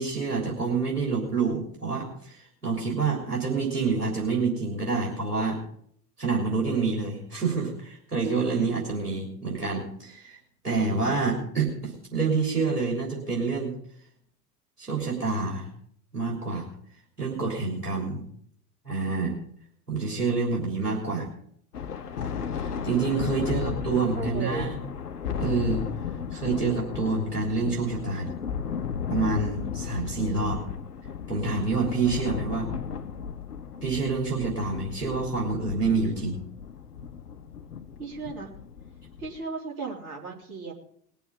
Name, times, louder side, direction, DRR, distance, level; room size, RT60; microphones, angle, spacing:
voice 1, 0.0-5.6 6.2-10.4 10.6-13.7 14.8-15.7 16.1-16.7 17.2-18.3 18.9-19.3 19.9-21.3 22.5-24.8 25.4-25.9 26.3-28.3 29.1-30.6 31.3-32.7 33.8-36.4, right 4 dB, 85° right, -2 dB, 3.5 m, -27 dB
Thunder, 21.7-39.4, left 7 dB, 80° left, 1.0 m, -35 dB
voice 2, 23.2-24.7 38.0-38.5 39.2-40.7, right 4 dB, 70° right, -2 dB, 3.6 m, -36 dB
20.5 x 7.0 x 5.3 m, 0.63 s
figure-of-eight pair, 75°, 46 cm